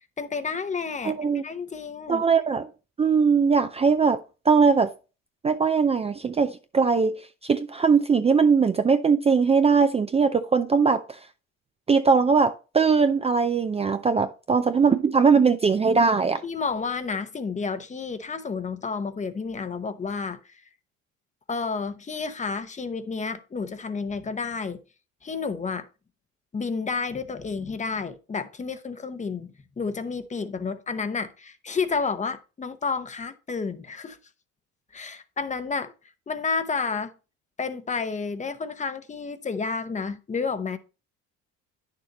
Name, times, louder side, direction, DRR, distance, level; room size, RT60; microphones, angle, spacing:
voice 1, 0.2-2.2 16.4-20.4 21.5-24.8 25.2-25.9 26.5-34.2 34.9-35.9 36.3-37.1 37.6-40.8, left 5 dB, 25° left, 0.8 m, -30 dB
voice 2, 1.0-1.4 2.1-2.7 3.0-4.2 4.5-4.9 5.4-11.2 11.9-16.4, right 5 dB, 20° right, 0.5 m, -20 dB
9.7 x 6.6 x 2.9 m
cardioid pair, 95°, 30 cm